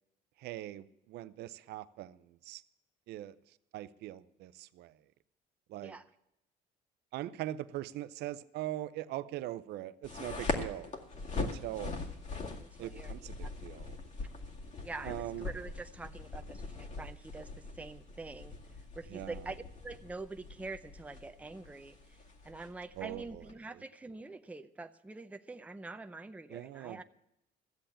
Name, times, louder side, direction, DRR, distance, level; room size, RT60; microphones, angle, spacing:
voice 1, 0.4-2.2 2.4-2.6 3.1-3.3 3.7-4.9 5.7-6.0 7.1-10.9 11.4-11.9 12.8-13.3 13.6-14.0 15.0-15.5 19.1-19.4 23.0-23.4 26.5-27.0, right 14 dB, 75° right, 0.6 m, -41 dB
sound 1, 10.0-23.5, left 3 dB, 45° left, 2.1 m, -42 dB
voice 2, 12.6-13.5 14.8-18.5 19.0-22.2 22.4-27.0, right 3 dB, 10° right, 0.6 m, -45 dB
14.0 x 7.9 x 8.7 m
cardioid pair, 110°, 17 cm